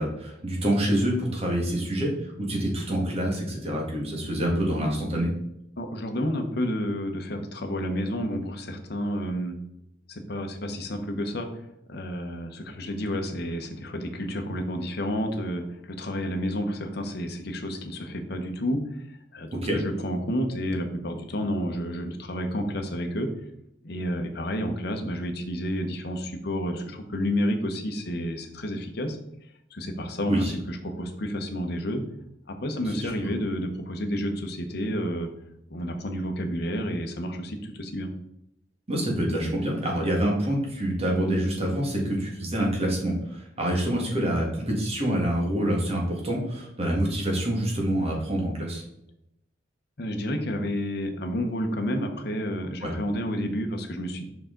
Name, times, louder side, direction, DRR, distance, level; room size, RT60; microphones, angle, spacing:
voice 1, 0.0-5.3 19.5-19.8 30.3-30.5 32.9-33.1 38.9-48.8 52.8-52.9, right 1 dB, 35° right, -1 dB, 1.7 m, -26 dB
voice 2, 5.8-9.5 10.1-11.6 11.9-18.8 19.3-23.3 23.8-29.2 29.7-30.3 30.7-32.0 32.5-35.3 35.7-38.1 50.0-54.3, equal, 60° left, 5 dB, 0.9 m, -30 dB
5.7 x 4.8 x 3.8 m, 0.79 s
head